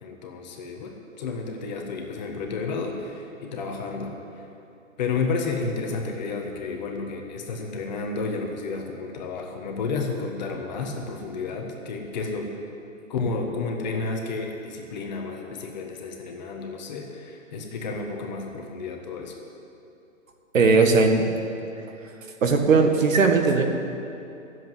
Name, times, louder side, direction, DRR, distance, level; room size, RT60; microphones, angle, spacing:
voice 1, 0.0-4.5 5.0-12.5 13.1-19.4, left 4 dB, 35° left, 2 dB, 1.5 m, -31 dB
voice 2, 20.5-21.2 22.4-23.6, right 4 dB, 70° right, 4 dB, 2.0 m, -18 dB
13.0 x 7.9 x 9.4 m, 2.7 s
hypercardioid pair, 155°, 40 cm